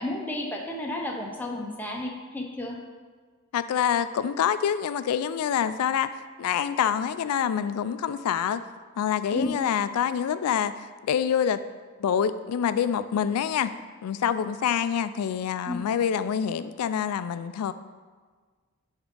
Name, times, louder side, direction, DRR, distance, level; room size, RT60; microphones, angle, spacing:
voice 1, 0.0-2.8 9.3-9.6 13.1-13.2 15.7-15.9, left 1 dB, 10° left, 0 dB, 0.6 m, -32 dB
voice 2, 3.5-6.1 6.4-8.6 9.0-11.6 12.0-13.7 14.0-17.7, left 8 dB, 85° left, 14 dB, 0.3 m, -26 dB
8.5 x 3.6 x 3.7 m, 1.5 s
head